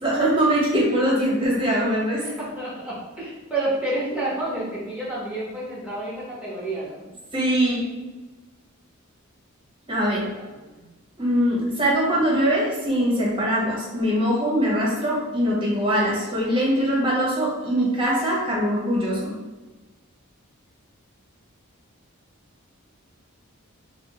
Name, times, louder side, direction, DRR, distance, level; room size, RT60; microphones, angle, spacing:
voice 1, 0.0-2.2 7.3-7.8 9.9-10.2 11.2-19.3, equal, 25° right, -5 dB, 1.1 m, -22 dB
voice 2, 2.2-7.0 10.5-10.8, right 2 dB, 5° right, -7 dB, 1.2 m, -29 dB
5.1 x 2.2 x 3.0 m, 1.2 s
head